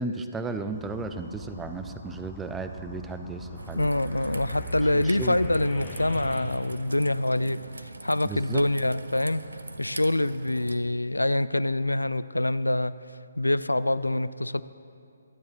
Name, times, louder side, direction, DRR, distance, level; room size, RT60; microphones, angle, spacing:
voice 1, 0.0-3.9 4.9-5.4 8.2-8.6, right 3 dB, 10° right, 8 dB, 0.5 m, -34 dB
sound 1, 0.7-6.4, left 1 dB, 20° left, 1.7 m, -40 dB
Raindrop / Trickle dribble, 3.6-10.8, right 2 dB, 75° right, 0.7 m, -42 dB
voice 2, 3.7-9.4 9.8-12.9 13.4-14.6, left 1 dB, 85° left, 16 dB, 0.3 m, -25 dB
24.5 x 9.6 x 3.0 m, 2.5 s
figure-of-eight pair, 140°, 0 cm